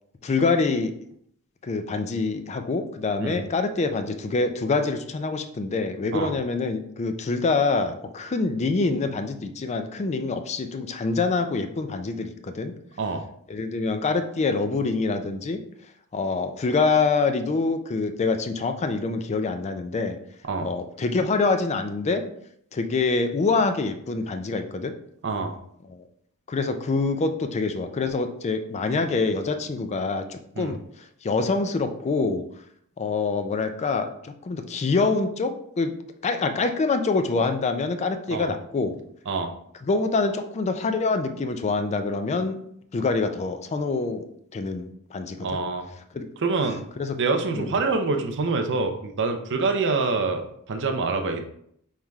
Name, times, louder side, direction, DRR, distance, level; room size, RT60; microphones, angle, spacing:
voice 1, 0.2-0.9 1.6-12.7 13.5-15.6 16.1-20.2 20.6-22.2 22.7-24.9 25.9-26.0 26.5-30.8 31.2-32.4 33.0-35.9 36.2-39.0 39.8-42.6 42.9-44.2 44.5-45.6 46.1-46.3 47.0-47.2 47.5-47.8, left 3 dB, 30° left, 8 dB, 0.3 m, -25 dB
voice 2, 25.2-25.5 30.6-30.7 38.3-38.5 39.3-39.5 45.4-45.9 46.4-46.8 47.2-51.4, right 3 dB, 55° right, 5 dB, 0.5 m, -26 dB
5.4 x 3.2 x 2.3 m, 0.69 s
head